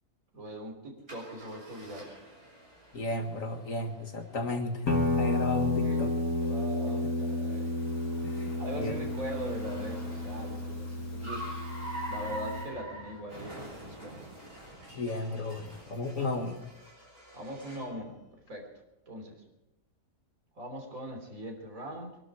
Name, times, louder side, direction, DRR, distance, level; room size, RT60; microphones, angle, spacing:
voice 1, 0.3-2.1 5.8-6.1 6.4-7.7 8.6-11.5 12.1-14.2 15.0-15.2 16.2-16.3 17.3-18.2 18.5-18.7 19.1-19.4 20.6-22.2, right 1 dB, 70° right, 2 dB, 3.9 m, -41 dB
Car, 1.1-18.0, right 1 dB, 45° right, 7.5 m, -46 dB
voice 2, 2.9-6.1 7.0-7.1 8.2-8.9 14.9-16.6, left 2 dB, 65° left, 4 dB, 2.2 m, -34 dB
Guitar, 4.9-12.7, left 2 dB, 90° left, 2.6 m, -31 dB
24.0 x 12.0 x 4.9 m, 0.93 s
omnidirectional pair, 1.5 m